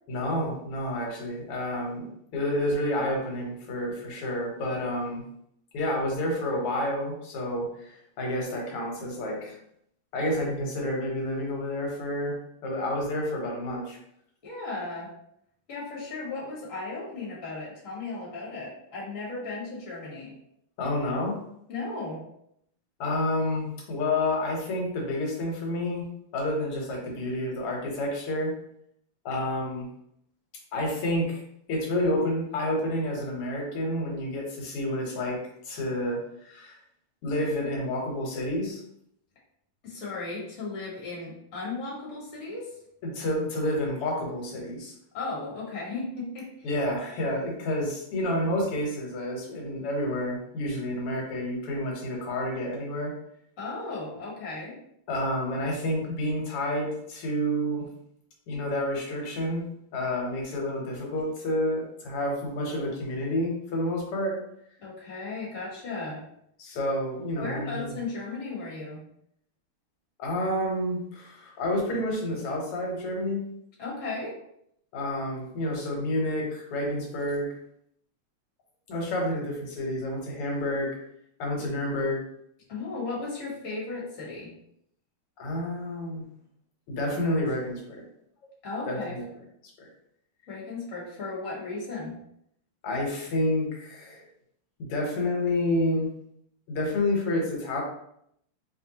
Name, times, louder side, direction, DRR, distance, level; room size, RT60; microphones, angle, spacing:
voice 1, 0.1-2.1 2.3-5.2 5.7-9.6 10.1-12.4 12.6-14.0 20.8-21.4 23.0-26.1 26.3-28.5 29.3-29.9 30.7-31.4 31.7-35.4 35.6-36.8 37.2-38.8 43.0-44.9 46.6-53.1 55.1-57.9 58.5-59.6 59.9-64.4 66.6-67.9 70.2-73.4 74.9-77.5 78.9-80.9 81.4-82.2 85.4-86.2 86.9-88.0 88.9-89.2 89.8-89.9 92.8-94.3 94.8-96.1 96.7-97.8, left 1 dB, 85° left, -1 dB, 2.1 m, -29 dB
voice 2, 14.4-15.1 15.7-20.3 21.7-22.2 39.8-42.7 45.1-46.5 53.6-54.8 64.8-66.2 67.4-69.0 73.8-74.4 82.7-84.5 88.6-89.2 90.5-92.2, left 3 dB, 40° left, -5 dB, 1.7 m, -35 dB
4.3 x 3.4 x 2.8 m, 0.73 s
omnidirectional pair, 2.4 m